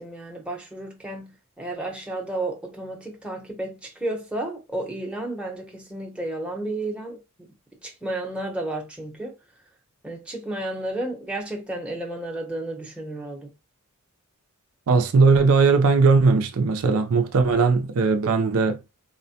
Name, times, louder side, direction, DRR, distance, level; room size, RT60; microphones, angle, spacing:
voice 1, 0.0-7.2 7.8-9.4 10.0-13.5, right 1 dB, 5° right, 0.8 m, -32 dB
voice 2, 14.9-18.8, right 4 dB, 70° right, 0.5 m, -19 dB
4.2 x 2.1 x 2.7 m
head